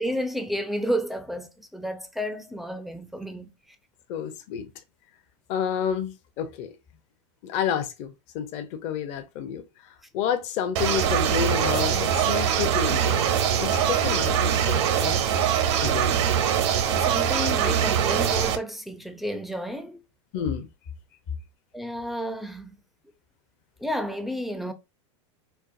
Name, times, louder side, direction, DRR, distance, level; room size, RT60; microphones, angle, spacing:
voice 1, 0.0-3.5 16.9-20.0 21.7-22.8 23.8-24.7, equal, ahead, 0.4 m, -31 dB
voice 2, 4.1-4.7 5.5-6.7 7.4-9.6 10.1-13.3 13.5-15.3 15.8-16.2 20.3-20.7, left 8 dB, 45° left, 0.7 m, -30 dB
sound 1, 10.8-18.6, right 8 dB, 65° right, 0.7 m, -23 dB
4.4 x 2.0 x 2.5 m
supercardioid pair, 125°, 15 cm